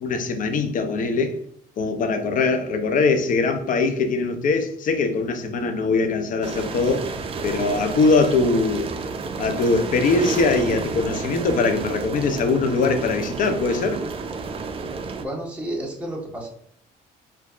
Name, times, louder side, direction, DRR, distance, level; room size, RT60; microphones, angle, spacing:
voice 1, 0.0-1.4 1.8-7.1 7.4-8.9 9.4-14.0, left 3 dB, 50° left, 7 dB, 0.6 m, -22 dB
sound 1, 6.4-15.2, right 4 dB, 35° right, 0.5 m, -31 dB
voice 2, 15.2-16.5, right 1 dB, 10° right, -3 dB, 1.3 m, -31 dB
4.3 x 2.6 x 2.4 m, 0.67 s
cardioid pair, 110°, 17 cm